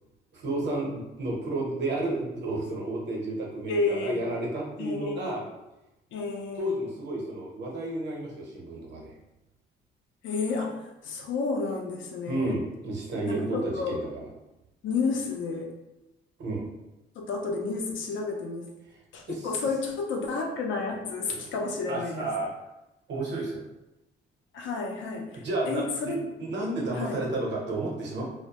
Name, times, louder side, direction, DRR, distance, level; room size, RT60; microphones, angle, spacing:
voice 1, 0.3-5.4 6.5-9.1 12.3-14.2 16.4-16.7 19.3-19.5 21.3-21.5 21.9-22.5 23.1-23.6 25.3-26.1 26.4-28.2, right 2 dB, 60° right, -2 dB, 0.8 m, -31 dB
voice 2, 3.7-4.3 4.8-5.4 6.1-6.8 10.2-10.8 11.0-12.5 13.3-14.0 14.8-15.7 17.1-18.7 19.1-22.2 24.5-26.5 26.9-27.3, left 4 dB, 75° left, 1 dB, 0.5 m, -31 dB
2.1 x 2.1 x 2.8 m, 0.98 s
cardioid pair, 90°, 20 cm